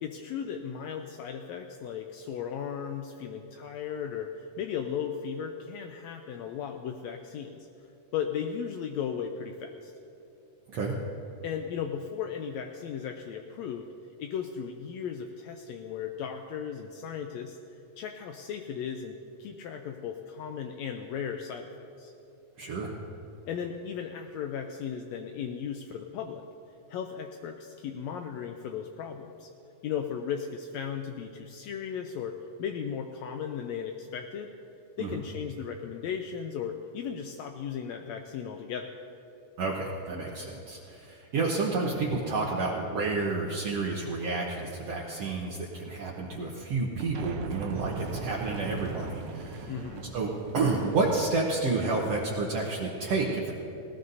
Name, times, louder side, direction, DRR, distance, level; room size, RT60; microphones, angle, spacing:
voice 1, 0.0-7.9 8.1-9.9 11.4-13.9 14.2-17.6 18.0-21.7 22.0-22.1 23.5-26.4 26.9-29.5 29.8-34.5 35.0-38.9 49.7-50.1, left 7 dB, 80° left, 4 dB, 1.6 m, -36 dB
voice 2, 22.6-23.0 35.0-35.2 39.6-49.7 50.1-53.5, right 3 dB, 65° right, -3 dB, 1.9 m, -30 dB
sound 1, 47.0-52.0, right 4 dB, 90° right, 1.2 m, -40 dB
19.0 x 18.0 x 2.7 m, 2.8 s
omnidirectional pair, 3.6 m